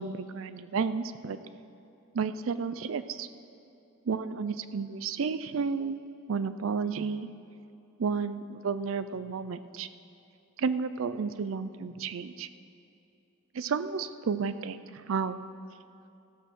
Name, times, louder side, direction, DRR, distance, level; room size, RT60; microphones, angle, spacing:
voice 1, 0.0-1.4 2.1-3.3 4.1-6.0 6.3-7.3 8.0-9.9 10.6-12.5 13.5-15.4, right 5 dB, 70° right, 13 dB, 0.4 m, -32 dB
15.0 x 6.9 x 6.1 m, 2.7 s
head